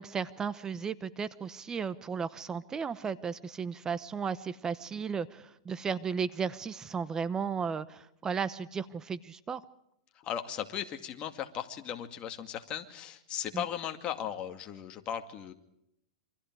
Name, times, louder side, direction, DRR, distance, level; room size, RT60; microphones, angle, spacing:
voice 1, 0.0-9.6 13.5-13.6, right 6 dB, 15° right, 15 dB, 0.9 m, -34 dB
voice 2, 10.2-15.5, left 9 dB, 30° left, 6 dB, 2.3 m, -37 dB
28.0 x 25.0 x 4.8 m, 0.79 s
hypercardioid pair, 140°, 4 cm